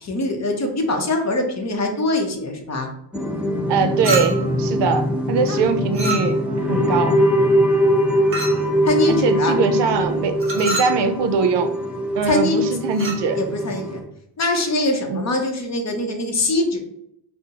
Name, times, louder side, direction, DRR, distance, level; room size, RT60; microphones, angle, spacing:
voice 1, 0.0-2.9 4.6-5.1 5.4-5.6 8.8-9.5 12.3-12.6 13.3-14.0 14.4-16.8, left 2 dB, 35° left, 4 dB, 0.7 m, -23 dB
sound 1, 3.1-14.0, equal, 5° right, 0.5 m, -22 dB
voice 2, 3.7-7.2 9.1-11.7 12.1-13.4 15.1-15.2, right 5 dB, 60° right, 8 dB, 0.5 m, -22 dB
Chink clink, 4.0-4.6 5.9-6.6 8.3-8.7 10.4-11.0 12.9-13.3, right 2 dB, 25° right, 1.0 m, -27 dB
5.0 x 2.1 x 2.8 m, 0.74 s
cardioid pair, 105°, 47 cm